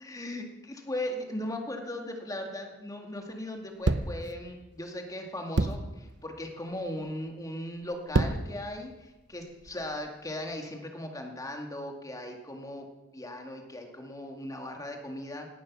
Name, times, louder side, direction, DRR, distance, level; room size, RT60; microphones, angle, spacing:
voice 1, 0.0-12.9 13.1-15.5, left 1 dB, 15° left, 3 dB, 2.2 m, -38 dB
sound 1, 3.8-4.3 5.6-5.9 6.7-7.0 7.8-8.6 9.2-10.1, right 2 dB, 60° right, 0.8 m, -28 dB
18.0 x 11.5 x 6.2 m, 1.0 s
head